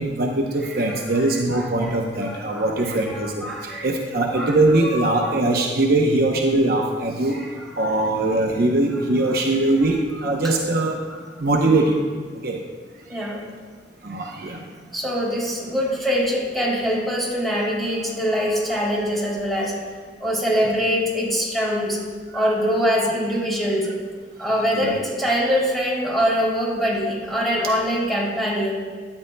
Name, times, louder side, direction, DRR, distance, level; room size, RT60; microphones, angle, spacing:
voice 1, 0.0-7.4 7.8-11.0 11.4-12.0 12.4-12.6 14.0-14.6 22.3-22.4 24.7-24.9, right 2 dB, 60° right, 1 dB, 0.8 m, -21 dB
voice 2, 0.9-1.9 2.2-3.9 4.3-5.4 7.3-7.9 13.1-13.5 14.9-19.8 20.2-22.0 22.3-23.9 24.4-28.7, equal, ahead, -6 dB, 2.9 m, -24 dB
13.0 x 9.7 x 2.2 m, 1.5 s
head